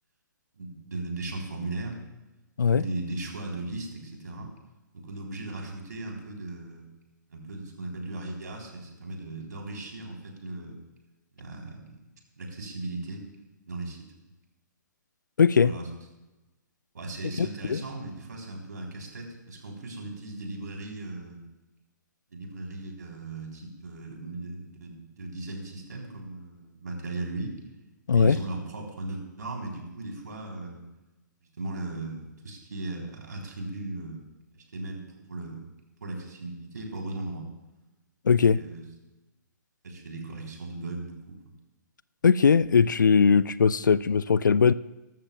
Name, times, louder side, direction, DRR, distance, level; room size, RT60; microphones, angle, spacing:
voice 1, 0.5-2.0 2.6-4.5 4.9-6.9 7.3-10.8 11.3-12.0 12.4-13.3 13.7-14.1 15.6-15.9 16.9-21.4 22.3-27.6 28.1-30.8 31.6-34.2 34.5-35.6 36.0-37.5 38.5-38.8 39.8-41.4, right 2 dB, 65° right, 0 dB, 3.4 m, -37 dB
voice 2, 15.4-15.7 17.4-17.8 28.1-28.4 38.3-38.6 42.2-44.7, left 6 dB, 75° left, 19 dB, 0.4 m, -20 dB
20.5 x 13.5 x 2.3 m, 1.1 s
figure-of-eight pair, 125°, 10 cm